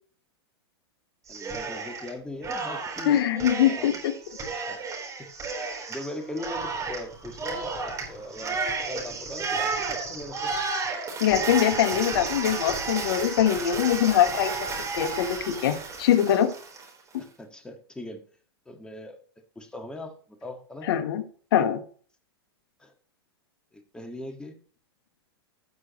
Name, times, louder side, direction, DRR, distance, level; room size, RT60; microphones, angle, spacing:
voice 1, 1.3-3.2 3.8-4.0 4.5-4.8 5.2-5.3 5.9-10.5 17.2-18.2 18.7-19.2 19.6-20.9 22.8-22.9 23.7-24.6, left 1 dB, 5° left, 4 dB, 1.7 m, -40 dB
Cheering, 1.3-2.1 2.4-16.9, right 4 dB, 25° right, 3.9 m, -32 dB
voice 2, 3.1-4.1 11.2-14.5 14.9-16.5 20.8-21.2 21.5-21.8, left 10 dB, 65° left, 8 dB, 1.2 m, -23 dB
16.5 x 6.2 x 3.1 m, 0.43 s
hypercardioid pair, 120°, 13 cm